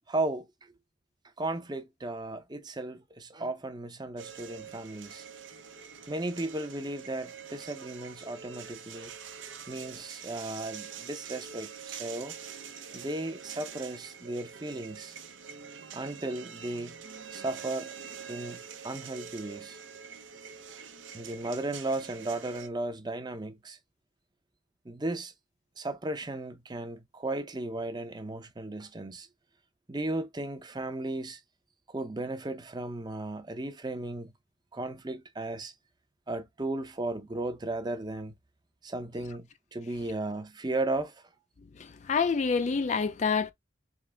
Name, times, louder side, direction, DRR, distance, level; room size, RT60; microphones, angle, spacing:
voice 1, 0.1-0.7 1.4-5.2 6.1-9.1 9.7-12.3 12.9-15.2 15.9-17.0 17.3-17.9 18.3-19.8 21.1-23.8 24.8-25.3 25.8-29.3 29.9-31.4 31.9-34.3 34.7-35.7 36.3-38.3 38.8-41.2, right 2 dB, 20° right, 0.6 m, -35 dB
sound 1, 4.2-22.7, right 7 dB, 90° right, 0.9 m, -45 dB
voice 2, 41.8-43.5, left 5 dB, 40° left, 0.4 m, -27 dB
3.7 x 3.5 x 3.3 m
head